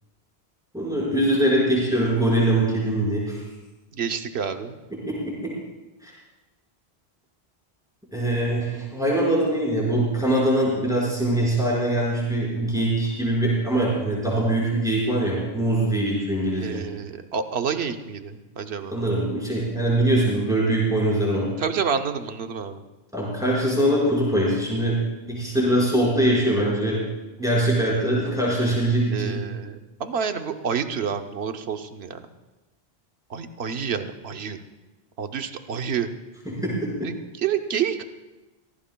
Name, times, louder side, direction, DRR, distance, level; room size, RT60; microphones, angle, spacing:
voice 1, 0.7-3.4 5.1-5.5 6.0-6.1 8.1-16.8 18.9-21.5 23.1-25.0 25.3-27.0 27.4-29.4 36.5-37.1, right 1 dB, 5° right, -6 dB, 5.1 m, -22 dB
voice 2, 3.9-4.8 16.6-19.0 21.6-22.8 29.1-32.2 33.3-34.6 35.2-36.1 37.0-38.0, right 7 dB, 85° right, 7 dB, 1.1 m, -28 dB
23.5 x 17.0 x 2.3 m, 1.1 s
omnidirectional pair, 1.0 m